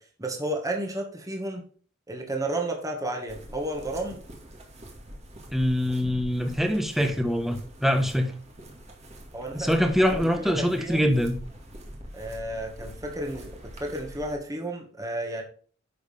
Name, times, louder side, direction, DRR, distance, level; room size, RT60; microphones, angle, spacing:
voice 1, 0.2-1.6 2.1-4.2 9.3-9.8 10.1-11.1 12.1-15.4, right 1 dB, 20° right, 2 dB, 1.8 m, -32 dB
sound 1, 3.3-14.4, equal, 35° right, 2.2 m, -44 dB
voice 2, 5.5-8.4 9.5-11.4, equal, ahead, 4 dB, 1.3 m, -24 dB
10.5 x 6.5 x 3.5 m, 0.42 s
head